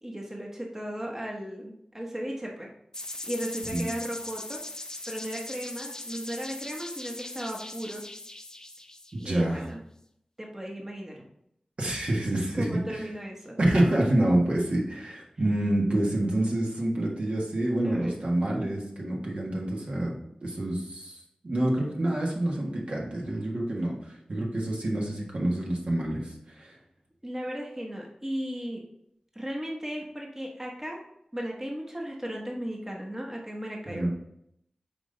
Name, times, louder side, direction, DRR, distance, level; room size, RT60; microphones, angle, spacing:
voice 1, 0.0-2.7 3.2-4.6 5.1-8.0 9.2-9.8 10.4-11.2 12.5-13.6 17.8-18.2 27.2-28.8 29.3-31.0 31.3-34.1, equal, 20° right, -1 dB, 1.1 m, -36 dB
sound 1, 2.9-9.7, left 2 dB, 25° left, 0.6 m, -40 dB
voice 2, 9.1-9.7 11.8-13.1 13.6-26.8 33.8-34.1, right 1 dB, 60° right, -2 dB, 1.5 m, -27 dB
6.0 x 4.1 x 3.9 m, 0.75 s
wide cardioid pair, 70°, 2 cm